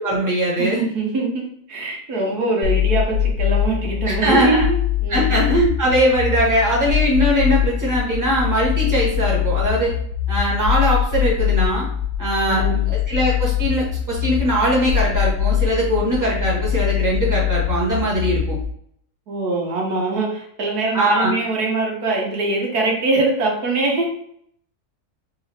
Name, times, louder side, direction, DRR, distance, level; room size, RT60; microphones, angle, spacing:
voice 1, 0.0-0.8 4.0-4.7 5.1-9.9 10.3-11.9 12.2-18.6 20.9-21.4, equal, 10° right, -5 dB, 1.4 m, -20 dB
voice 2, 0.6-1.4 1.7-5.5 12.4-12.8 19.3-24.1, right 3 dB, 80° right, -1 dB, 1.6 m, -23 dB
sound 1, 2.6-18.6, left 10 dB, 75° left, 1.2 m, -22 dB
4.1 x 3.7 x 3.4 m, 0.68 s
omnidirectional pair, 1.6 m